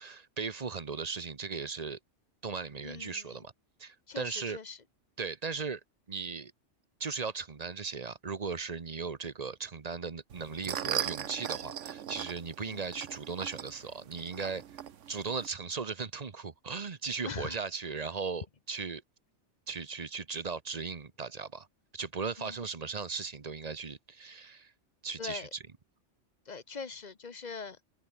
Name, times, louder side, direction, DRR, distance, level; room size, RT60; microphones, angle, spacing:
voice 1, 0.0-2.0 2.4-3.5 3.8-4.6 5.2-5.8 6.1-6.5 7.0-14.6 15.1-19.0 19.7-21.7 21.9-24.7 25.0-25.5, right 5 dB, 35° right, 1.1 m, -37 dB
voice 2, 2.8-3.2 4.1-4.8 12.6-13.0 17.2-17.6 22.4-22.6 25.2-25.5 26.5-27.8, left 5 dB, 40° left, 1.1 m, -42 dB
sound 1, 10.3-15.5, right 9 dB, 80° right, 1.2 m, -39 dB
omnidirectional pair, 1.2 m